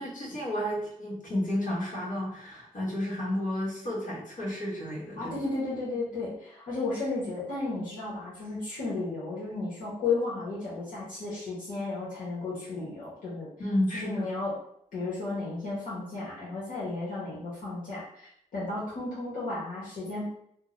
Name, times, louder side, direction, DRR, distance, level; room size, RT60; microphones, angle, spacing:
voice 1, 0.0-5.3 13.6-14.3, left 1 dB, 70° left, -6 dB, 1.4 m, -31 dB
voice 2, 5.1-13.5 13.9-14.5 14.9-20.3, left 3 dB, 90° left, -8 dB, 1.1 m, -33 dB
2.8 x 2.1 x 3.7 m, 0.71 s
cardioid pair, 90°, 14 cm